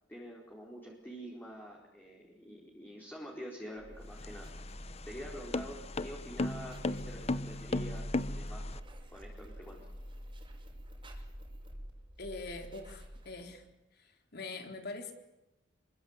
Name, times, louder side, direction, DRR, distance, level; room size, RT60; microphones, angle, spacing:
voice 1, 0.1-4.5 5.1-8.8 9.1-9.8, equal, 10° left, -2 dB, 4.5 m, -47 dB
sound 1, 3.8-13.7, equal, 25° right, 5.5 m, -46 dB
sound 2, 4.0-8.8, left 2 dB, 35° left, 0.9 m, -36 dB
voice 2, 12.2-13.6 13.9-15.1, left 3 dB, 55° left, 4 dB, 3.9 m, -43 dB
27.5 x 23.5 x 8.2 m, 1.0 s
head